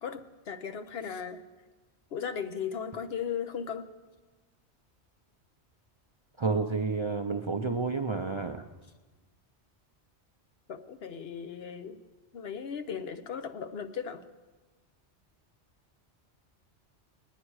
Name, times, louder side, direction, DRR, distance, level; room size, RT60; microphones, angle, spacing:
voice 1, 0.0-1.4 2.1-3.9 10.7-12.0 12.3-14.2, left 7 dB, 65° left, 9 dB, 1.0 m, -37 dB
voice 2, 6.4-8.7, right 4 dB, 35° right, 5 dB, 0.5 m, -30 dB
20.5 x 10.0 x 4.7 m, 1.2 s
omnidirectional pair, 1.2 m